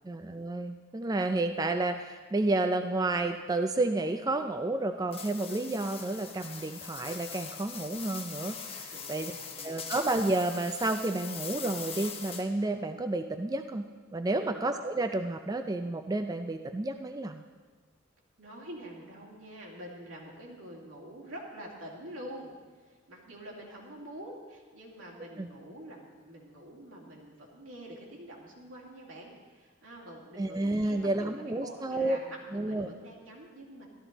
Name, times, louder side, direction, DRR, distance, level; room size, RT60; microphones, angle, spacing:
voice 1, 0.0-9.3 9.6-13.8 14.1-17.4 25.4-25.5 30.4-32.2 32.5-32.9, right 2 dB, 20° right, 7 dB, 0.4 m, -31 dB
sound 1, 5.1-12.7, left 6 dB, 30° left, 0.9 m, -42 dB
voice 2, 8.9-9.9 14.3-14.6 18.4-22.5 22.8-33.9, right 1 dB, 90° right, -3 dB, 2.6 m, -46 dB
13.0 x 12.5 x 4.0 m, 1.4 s
head